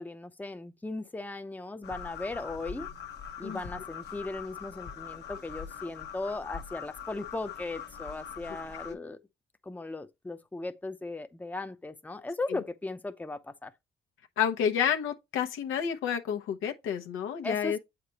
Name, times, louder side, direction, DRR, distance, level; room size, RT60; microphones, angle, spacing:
voice 1, 0.0-2.9 3.4-9.2 9.6-13.7 17.4-17.8, left 2 dB, 10° left, 0.7 m, -37 dB
sound 1, 1.8-8.9, left 7 dB, 60° left, 1.0 m, -42 dB
voice 2, 14.4-17.8, left 8 dB, 90° left, 1.0 m, -30 dB
7.8 x 5.0 x 2.9 m
cardioid pair, 90°, 20 cm